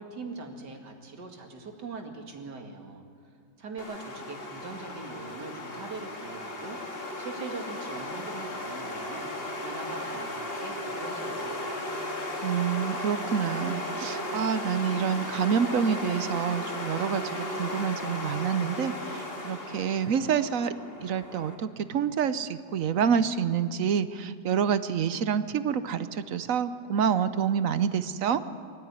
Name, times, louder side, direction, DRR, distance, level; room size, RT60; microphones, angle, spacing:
voice 1, 0.0-3.0 3.6-9.3 9.6-11.6, right 4 dB, 90° right, 3 dB, 2.8 m, -41 dB
sound 1, 3.8-21.5, left 1 dB, 35° left, 2.3 m, -36 dB
voice 2, 12.4-20.7 21.0-28.4, right 7 dB, 60° right, 13 dB, 1.0 m, -27 dB
23.0 x 14.5 x 9.6 m, 2.2 s
omnidirectional pair, 1.8 m